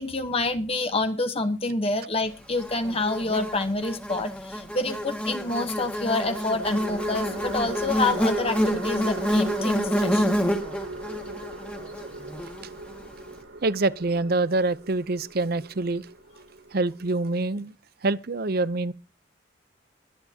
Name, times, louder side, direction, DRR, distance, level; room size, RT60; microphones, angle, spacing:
voice 1, 0.0-10.3, left 2 dB, 30° left, 1.0 m, -27 dB
Buzz, 2.6-13.0, equal, 5° left, 1.8 m, -28 dB
sound 1, 2.9-3.8 6.0-17.4, right 2 dB, 90° right, 4.2 m, -38 dB
voice 2, 13.6-16.1 16.7-17.8 18.0-18.9, right 2 dB, 50° right, 0.7 m, -25 dB
23.0 x 9.5 x 2.9 m
head